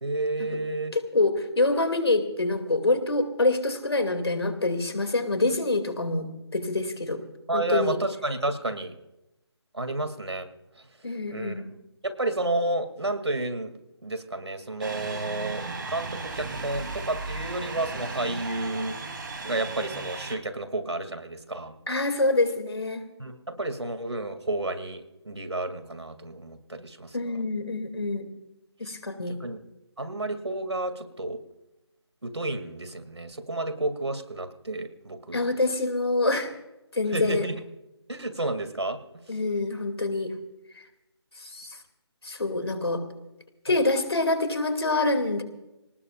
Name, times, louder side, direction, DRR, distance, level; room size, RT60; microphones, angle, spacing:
voice 1, 0.0-0.9 7.5-9.0 9.7-10.5 11.3-11.7 12.0-13.7 14.0-19.0 19.4-21.7 23.2-27.4 29.4-29.6 30.0-31.4 32.2-35.4 37.1-37.6 38.1-39.0 43.7-43.8, right 2 dB, 75° right, 9 dB, 2.5 m, -31 dB
voice 2, 0.9-7.2 7.5-8.0 11.0-11.7 21.9-23.0 27.1-28.2 28.8-29.4 35.3-36.5 36.9-37.4 39.3-40.3 41.4-41.8 42.2-43.0 43.6-45.4, left 2 dB, 65° left, 8 dB, 2.5 m, -26 dB
sound 1, 14.8-20.4, right 3 dB, 50° right, 3.1 m, -36 dB
25.5 x 19.0 x 2.5 m, 0.95 s
figure-of-eight pair, 155°, 14 cm